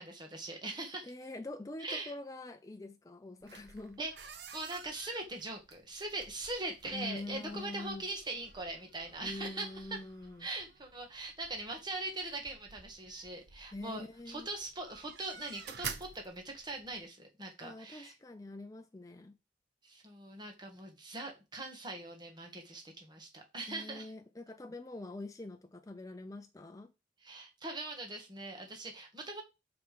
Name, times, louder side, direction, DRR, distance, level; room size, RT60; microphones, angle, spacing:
voice 1, 0.0-1.1 1.8-2.1 4.0-10.0 10.4-18.1 19.8-24.1 27.2-29.4, right 2 dB, 25° right, 1.8 m, -41 dB
voice 2, 1.0-4.0 6.9-8.0 9.2-10.5 13.7-14.5 17.6-19.4 23.7-26.9, left 2 dB, 20° left, 0.5 m, -45 dB
sound 1, 3.4-17.0, right 6 dB, 70° right, 0.9 m, -51 dB
6.1 x 4.8 x 5.0 m
head